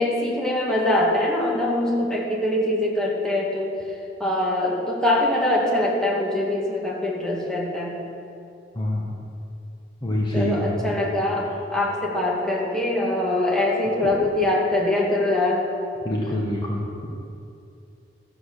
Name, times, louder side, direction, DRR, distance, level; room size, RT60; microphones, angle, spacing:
voice 1, 0.0-3.8 4.2-8.0 10.3-15.7, left 1 dB, 5° left, -4 dB, 2.0 m, -23 dB
voice 2, 10.0-11.0 16.0-17.1, left 1 dB, 25° left, -4 dB, 1.3 m, -26 dB
13.0 x 7.8 x 6.6 m, 2.6 s
head